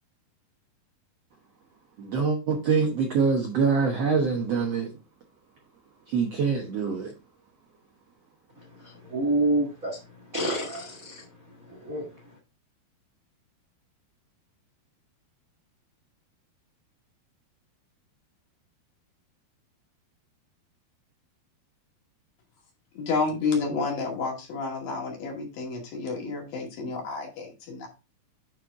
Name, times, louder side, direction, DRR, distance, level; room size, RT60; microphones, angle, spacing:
voice 1, 2.0-5.0 6.1-7.1, right 5 dB, 70° right, 1.5 m, -25 dB
voice 2, 8.8-10.0 10.3-11.3 11.7-12.1, right 1 dB, 55° right, 0.9 m, -28 dB
voice 3, 22.9-27.9, left 4 dB, 65° left, 3.9 m, -30 dB
8.9 x 4.7 x 3.7 m
omnidirectional pair, 4.6 m